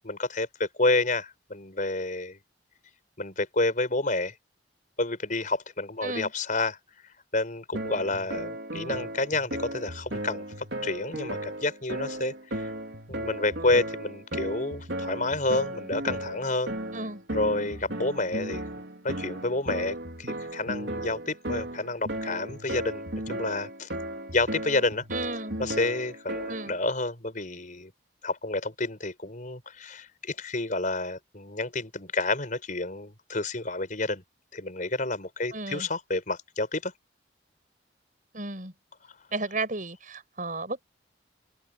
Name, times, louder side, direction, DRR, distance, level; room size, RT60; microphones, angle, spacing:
voice 1, 0.0-2.4 3.2-4.3 5.0-6.8 7.3-10.4 10.8-12.7 13.1-16.8 17.3-18.6 19.0-23.9 24.3-25.0 25.6-27.9 28.2-34.2 34.5-36.9, left 2 dB, 45° left, 4.9 m, -29 dB
sound 1, 7.7-26.8, right 1 dB, 65° right, 3.7 m, -35 dB
voice 2, 25.1-25.5 26.5-26.7 35.5-35.9 38.3-38.7 39.3-40.8, right 3 dB, 45° right, 7.4 m, -33 dB
head